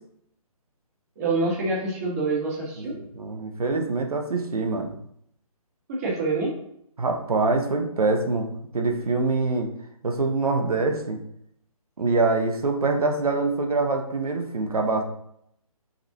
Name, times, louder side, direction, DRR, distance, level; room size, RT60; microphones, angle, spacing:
voice 1, 1.2-2.9 5.9-6.5, right 3 dB, 25° right, -6 dB, 2.1 m, -26 dB
voice 2, 2.9-4.9 7.0-9.7 10.0-11.2 12.0-15.0, right 3 dB, 80° right, 4 dB, 1.4 m, -24 dB
5.9 x 5.4 x 3.0 m, 0.72 s
hypercardioid pair, 165°, 19 cm